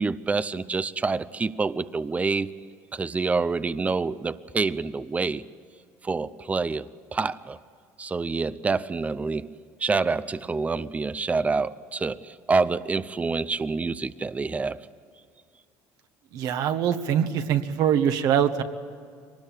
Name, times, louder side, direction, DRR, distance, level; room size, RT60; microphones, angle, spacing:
voice 1, 0.0-2.6 2.9-5.4 6.0-7.6 8.0-9.5 9.8-14.8, right 4 dB, 20° right, 0.7 m, -27 dB
voice 2, 16.3-18.6, right 9 dB, 65° right, 1.5 m, -23 dB
23.5 x 19.5 x 9.2 m
supercardioid pair, 85°, 7 cm